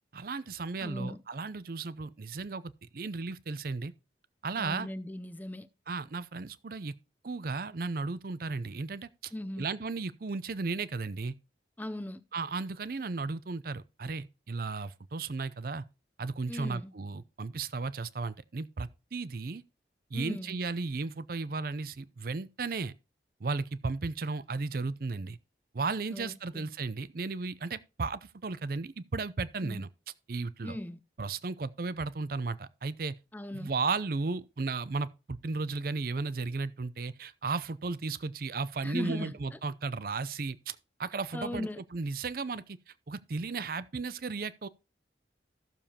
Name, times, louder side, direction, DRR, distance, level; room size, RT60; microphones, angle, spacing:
voice 1, 0.1-3.9 4.4-4.9 5.9-6.9 7.2-11.4 12.3-15.8 16.2-19.6 20.1-22.9 23.4-25.4 25.7-29.9 30.3-30.8 31.2-33.1 33.5-42.8 43.1-44.7, right 4 dB, 50° right, 0.5 m, -35 dB
voice 2, 0.8-1.2 4.6-5.7 9.3-9.7 11.8-12.2 16.5-16.9 20.1-20.6 26.1-26.7 29.6-29.8 30.6-31.0 33.3-33.7 38.8-39.6 41.3-41.8, left 1 dB, 10° left, 0.4 m, -38 dB
15.0 x 6.9 x 2.9 m
head